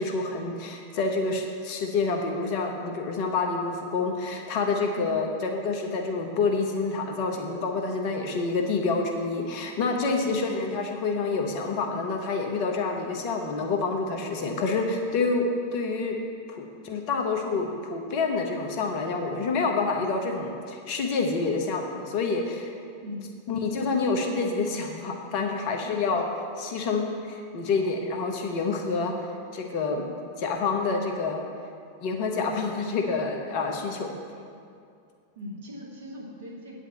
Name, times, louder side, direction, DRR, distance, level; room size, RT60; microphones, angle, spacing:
voice 1, 0.0-15.5 15.7-16.1 16.5-22.7 23.5-26.2 26.6-29.1 29.5-30.1 30.4-31.4 32.0-34.2, left 4 dB, 45° left, 3 dB, 1.0 m, -28 dB
voice 2, 23.0-23.4 25.9-26.0 35.4-36.8, left 1 dB, 55° right, -2 dB, 1.9 m, -40 dB
8.9 x 5.3 x 7.5 m, 2.4 s
figure-of-eight pair, 90°, 0 cm